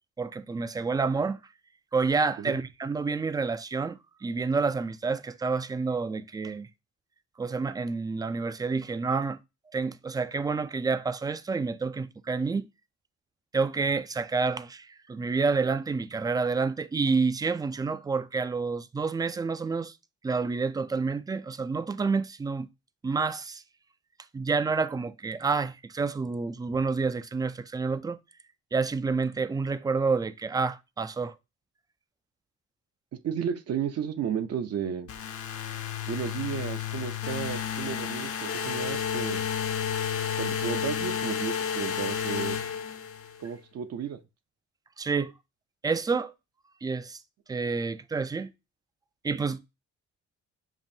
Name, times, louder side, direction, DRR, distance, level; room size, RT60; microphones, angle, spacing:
voice 1, 0.2-1.4 1.9-6.7 7.4-9.4 9.7-12.7 13.5-19.9 20.2-22.7 23.0-23.6 24.3-28.2 28.7-31.3 45.0-45.3 45.8-46.3 46.8-47.2 47.5-48.5 49.2-49.6, right 4 dB, 15° right, 0.3 m, -29 dB
voice 2, 33.2-35.1 36.1-39.5 40.4-42.6 43.4-44.2, right 8 dB, 55° right, 0.6 m, -33 dB
sound 1, 35.1-43.4, left 8 dB, 50° left, 0.7 m, -31 dB
7.2 x 2.5 x 2.7 m
cardioid pair, 95°, 30 cm